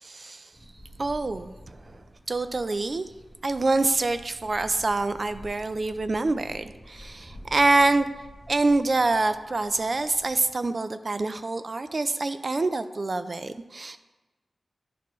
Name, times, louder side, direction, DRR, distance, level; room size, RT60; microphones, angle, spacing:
voice 1, 0.0-0.5 1.0-3.1 3.4-8.1 8.5-14.0, right 2 dB, 45° right, 11 dB, 0.4 m, -26 dB
sound 1, 0.5-10.5, equal, ahead, 1.1 m, -49 dB
11.0 x 4.3 x 3.1 m, 1.1 s
wide cardioid pair, 80°, 0 cm